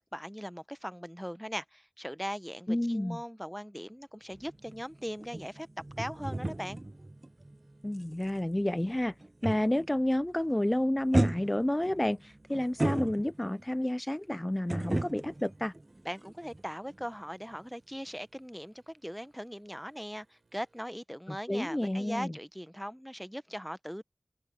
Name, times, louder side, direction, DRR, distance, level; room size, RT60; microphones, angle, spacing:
voice 1, 0.0-5.7 6.0-6.8 16.0-24.0, equal, ahead, 0.8 m, -40 dB
voice 2, 2.7-3.2 7.8-9.1 9.4-15.7 21.3-22.3, left 1 dB, 20° left, 0.5 m, -30 dB
sound 1, 3.8-20.9, right 3 dB, 70° right, 6.1 m, -72 dB
sound 2, 4.3-10.0 10.3-10.6 11.1-13.6 14.7-16.6 16.9-17.1, right 2 dB, 40° right, 0.7 m, -35 dB
open air
wide cardioid pair, 45°, 0 cm